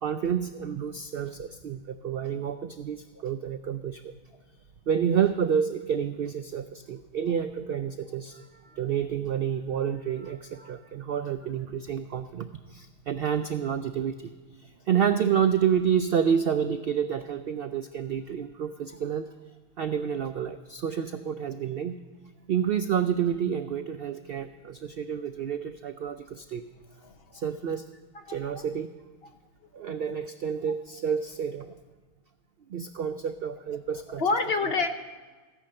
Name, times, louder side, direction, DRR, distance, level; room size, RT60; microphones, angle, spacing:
voice 1, 0.0-4.1 4.9-14.3 14.6-19.3 19.8-22.0 22.5-26.6 27.3-27.8 28.3-28.9 29.7-31.8 32.7-34.2, right 8 dB, 70° right, 10 dB, 0.5 m, -29 dB
voice 2, 27.0-27.4 28.1-28.6 30.7-30.8 34.1-34.9, left 4 dB, 50° left, 7 dB, 0.9 m, -29 dB
14.5 x 10.0 x 6.4 m, 1.4 s
omnidirectional pair, 1.5 m